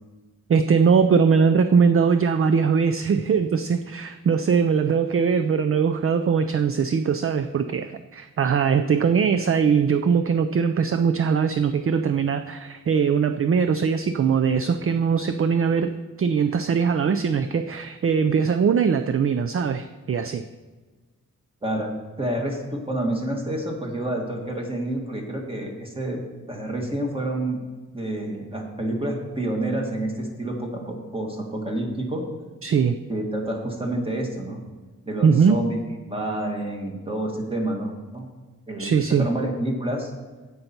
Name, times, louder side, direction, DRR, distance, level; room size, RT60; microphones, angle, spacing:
voice 1, 0.5-15.9 16.2-20.4 32.6-33.0 35.2-35.6 38.8-39.3, right 6 dB, 45° right, 9 dB, 0.4 m, -21 dB
voice 2, 21.6-21.9 22.2-26.2 26.5-27.6 27.9-32.3 33.1-34.6 35.1-35.8 36.1-38.3 38.7-40.1, right 1 dB, 15° right, 0 dB, 1.7 m, -28 dB
15.5 x 5.5 x 4.4 m, 1.3 s
wide cardioid pair, 145°, 31 cm